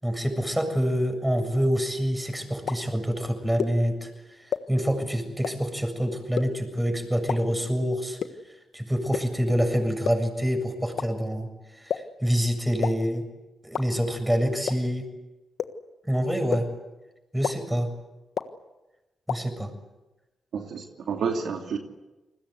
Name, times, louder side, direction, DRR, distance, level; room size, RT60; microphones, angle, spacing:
voice 1, 0.0-4.1 4.7-8.2 8.7-11.5 11.8-13.2 13.6-15.1 16.0-16.7 17.3-17.9 19.3-19.7, equal, 10° right, 7 dB, 7.3 m, -26 dB
sound 1, 2.7-2.8 3.6-3.7 4.5-4.6 5.4-5.5 6.4-6.5 7.3-7.4 8.2-8.3 9.1-9.2 10.1-10.2 11.0-11.1 11.9-12.0 12.8-12.9 13.7-13.8 14.7-14.8 15.6-15.7 16.5-16.6 17.4-17.5 18.4-18.5 19.3-19.4, left 8 dB, 80° left, 1.4 m, -26 dB
voice 2, 20.5-21.8, right 6 dB, 80° right, 3 dB, 2.8 m, -30 dB
29.5 x 20.5 x 8.2 m, 1.1 s
cardioid pair, 65°, 0 cm